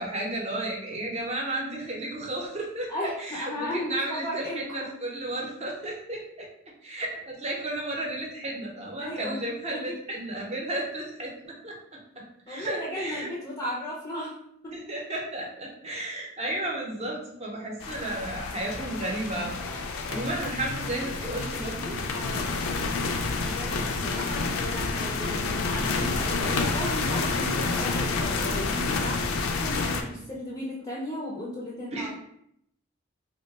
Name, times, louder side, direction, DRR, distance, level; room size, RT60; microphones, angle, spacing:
voice 1, 0.0-2.9 3.2-6.5 6.8-11.7 12.5-13.3 14.7-19.6 20.1-21.9 31.9-32.1, right 1 dB, 30° right, -1 dB, 0.7 m, -33 dB
voice 2, 2.9-5.0 9.0-9.5 9.7-10.0 12.5-14.4 14.6-14.8 20.1-20.5 20.8-20.9 22.1-22.6 23.3-32.1, left 1 dB, 15° left, -5 dB, 0.5 m, -36 dB
sound 1, 17.8-30.0, left 3 dB, 70° left, 0.4 m, -29 dB
2.9 x 2.1 x 4.0 m, 0.74 s
head